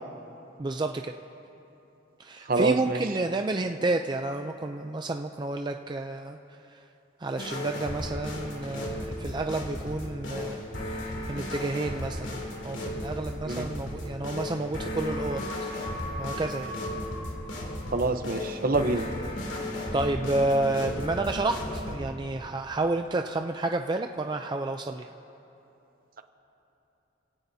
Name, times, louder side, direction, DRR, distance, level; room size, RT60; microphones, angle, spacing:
voice 1, 0.6-1.1 2.2-6.4 6.7-6.8 7.2-10.6 11.3-15.4 16.2-16.7 19.9-25.1, right 2 dB, 25° right, 5 dB, 0.4 m, -30 dB
voice 2, 2.5-3.0 13.5-13.6 17.9-19.1, right 2 dB, 50° right, 8 dB, 0.8 m, -26 dB
sound 1, 7.4-22.0, left 1 dB, 90° left, 2.7 m, -35 dB
28.5 x 17.0 x 2.7 m, 2.9 s
head